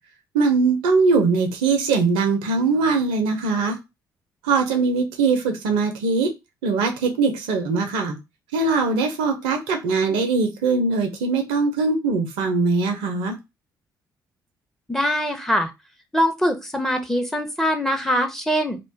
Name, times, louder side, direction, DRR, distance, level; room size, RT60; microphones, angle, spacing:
voice 1, 0.3-3.8 4.4-6.3 6.6-8.2 8.5-13.4, right 4 dB, 70° right, 6 dB, 0.5 m, -21 dB
voice 2, 14.9-15.7 16.1-18.8, equal, 5° left, 6 dB, 0.7 m, -22 dB
2.4 x 2.2 x 3.3 m, 0.24 s
figure-of-eight pair, 45°, 10 cm